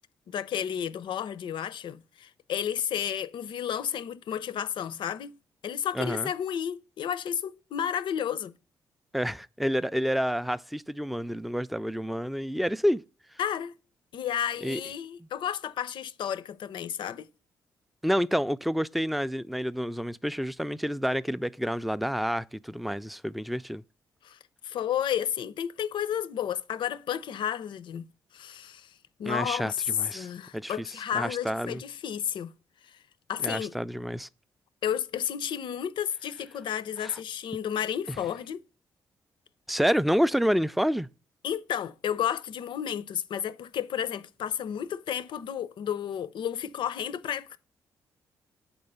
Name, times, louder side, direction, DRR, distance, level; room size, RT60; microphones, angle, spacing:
voice 1, 0.3-5.4 5.6-8.5 13.4-13.7 14.1-17.3 24.2-24.4 24.6-28.1 28.3-28.9 29.2-29.8 30.1-32.5 32.9-33.0 33.3-33.7 34.8-38.6 41.4-47.6, left 9 dB, 65° left, 0.5 m, -32 dB
voice 2, 5.9-6.3 9.1-13.0 14.6-14.8 18.0-23.8 29.3-31.8 33.4-34.3 37.0-37.2 38.1-38.2 39.7-41.1, equal, ahead, 0.3 m, -29 dB
6.7 x 4.4 x 5.4 m
supercardioid pair, 55°, 9 cm